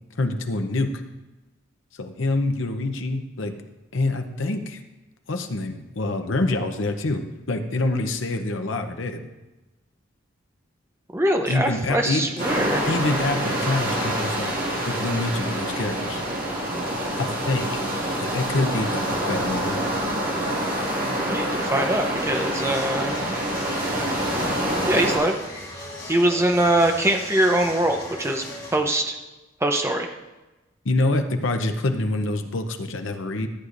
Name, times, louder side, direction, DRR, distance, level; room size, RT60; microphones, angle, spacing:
voice 1, 0.2-0.9 2.0-3.5 3.9-4.8 5.3-7.2 7.5-9.2 11.5-12.2 12.8-14.6 14.8-16.2 17.2-17.7 18.2-19.8 30.8-33.5, left 2 dB, 70° left, 7 dB, 0.8 m, -26 dB
voice 2, 11.1-12.9 21.3-23.1 24.9-25.3 26.1-28.4 28.7-29.2 29.6-30.1, right 1 dB, 15° right, 4 dB, 0.7 m, -22 dB
sound 1, 12.4-25.2, right 1 dB, 45° right, 1.9 m, -26 dB
sound 2, 22.2-28.8, left 2 dB, 20° left, 3.5 m, -38 dB
14.0 x 8.1 x 2.6 m, 1.1 s
head